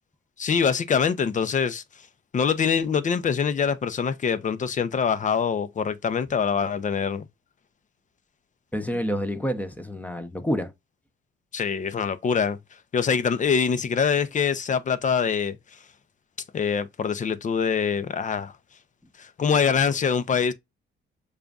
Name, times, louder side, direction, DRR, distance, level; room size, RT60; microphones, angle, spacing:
voice 1, 0.4-1.8 2.3-7.3 11.5-12.6 12.9-15.6 16.5-18.5 19.2-20.5, left 6 dB, 40° left, 0.6 m, -24 dB
voice 2, 8.7-10.7, equal, 10° left, 0.7 m, -28 dB
6.5 x 2.4 x 2.4 m
cardioid pair, 90°, 20 cm